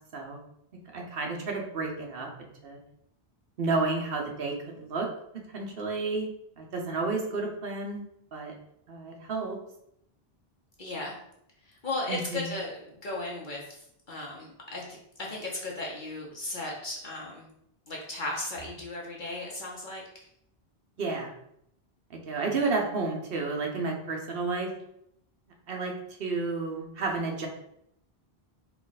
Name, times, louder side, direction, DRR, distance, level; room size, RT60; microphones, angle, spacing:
voice 1, 0.9-2.3 2.6-2.8 3.6-5.1 5.5-6.3 6.6-8.0 8.3-8.5 8.9-9.6 12.1-12.5 21.0-21.3 22.3-24.7 25.7-25.9 26.2-27.5, right 3 dB, 70° right, 1 dB, 1.1 m, -31 dB
voice 2, 10.8-11.2 11.6-14.8 15.2-17.5 17.9-20.0, left 2 dB, 55° left, -3 dB, 0.9 m, -36 dB
4.6 x 2.4 x 4.0 m, 0.75 s
omnidirectional pair, 1.0 m